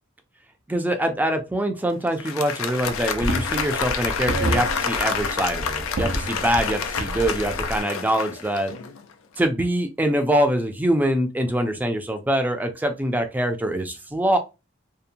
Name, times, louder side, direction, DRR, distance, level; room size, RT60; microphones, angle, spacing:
voice 1, 0.7-8.7 9.4-14.4, right 1 dB, 10° right, 6 dB, 0.4 m, -24 dB
Applause, 2.1-9.1, left 6 dB, 90° left, 0.4 m, -29 dB
sound 1, 2.9-7.8, right 1 dB, 85° right, 0.6 m, -30 dB
2.7 x 2.1 x 2.5 m, 0.26 s
head